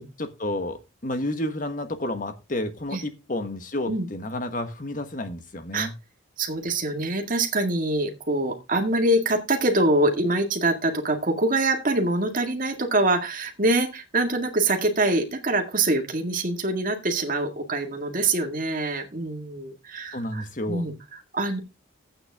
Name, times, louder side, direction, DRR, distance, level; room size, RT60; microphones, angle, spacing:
voice 1, 0.2-5.9 20.1-20.9, left 1 dB, 40° left, 8 dB, 1.4 m, -31 dB
voice 2, 6.4-21.6, right 2 dB, 40° right, 3 dB, 2.0 m, -24 dB
11.0 x 8.8 x 3.6 m, 0.26 s
head